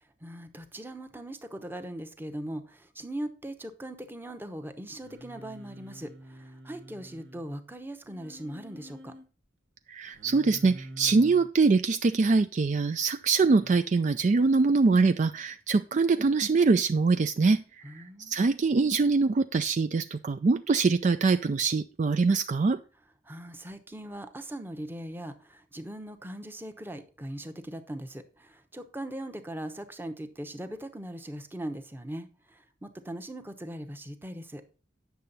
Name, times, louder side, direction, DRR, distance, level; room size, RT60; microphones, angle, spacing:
voice 1, 0.2-9.1 17.8-18.4 23.2-34.6, right 1 dB, 10° right, 0.9 m, -40 dB
Singing, 5.0-7.4 8.1-9.2 10.1-11.5 13.4-13.7, right 1 dB, 70° right, 1.6 m, -47 dB
voice 2, 9.9-22.8, right 4 dB, 40° right, 0.4 m, -24 dB
9.3 x 6.8 x 4.0 m
head